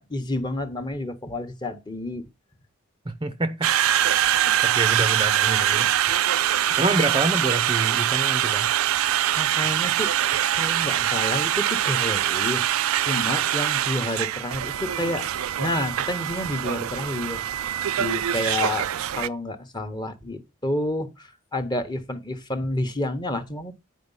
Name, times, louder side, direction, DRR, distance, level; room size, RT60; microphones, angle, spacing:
voice 1, 0.0-2.2 9.3-10.1 10.5-15.3 15.6-17.4 18.0-23.7, left 1 dB, 20° left, 1.0 m, -30 dB
voice 2, 3.1-3.7 4.6-5.9 6.8-8.7, right 2 dB, 20° right, 0.6 m, -26 dB
Conversation, 3.6-19.3, right 11 dB, 70° right, 0.4 m, -23 dB
9.4 x 4.9 x 5.5 m
head